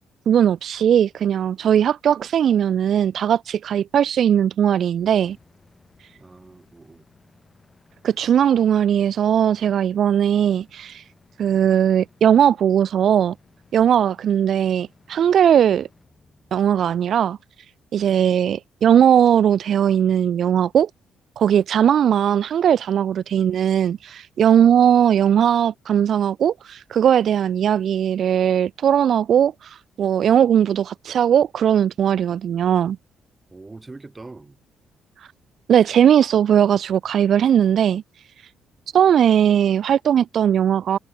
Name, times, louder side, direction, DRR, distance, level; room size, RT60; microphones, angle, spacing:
voice 1, 0.3-5.4 8.0-11.0 11.4-13.3 13.7-15.9 16.5-17.4 17.9-20.9 21.4-33.0 35.2-35.3 35.7-38.0 38.9-41.0, right 9 dB, 45° right, 0.4 m, -18 dB
sound 1, 4.9-18.9, left 3 dB, 15° left, 6.3 m, -58 dB
voice 2, 6.2-7.1 33.5-34.6, right 3 dB, 15° right, 2.6 m, -42 dB
cardioid pair, 170°, 0 cm